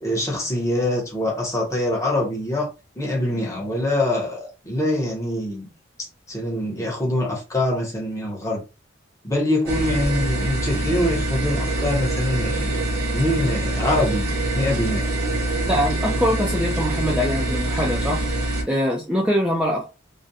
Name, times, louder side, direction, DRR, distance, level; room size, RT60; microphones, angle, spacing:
voice 1, 0.0-2.7 3.0-5.7 6.3-8.6 9.2-12.8 13.1-14.3 14.6-15.1, left 1 dB, 15° left, 0.7 m, -24 dB
sound 1, 9.7-18.6, right 1 dB, 55° right, 0.8 m, -24 dB
voice 2, 15.6-18.2 18.7-19.9, equal, 5° right, 0.3 m, -23 dB
2.4 x 2.1 x 2.6 m
head